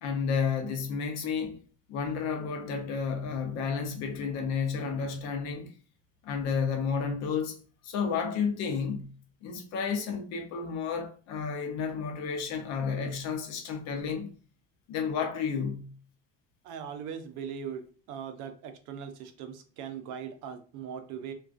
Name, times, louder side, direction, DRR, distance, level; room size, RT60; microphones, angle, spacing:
voice 1, 0.0-1.6 1.9-5.7 6.2-7.6 7.8-9.1 9.4-14.3 14.9-15.9, left 6 dB, 55° left, 0.5 m, -31 dB
voice 2, 16.6-17.8 18.1-21.3, right 7 dB, 70° right, 0.5 m, -40 dB
2.4 x 2.3 x 2.4 m
cardioid pair, 170°, 31 cm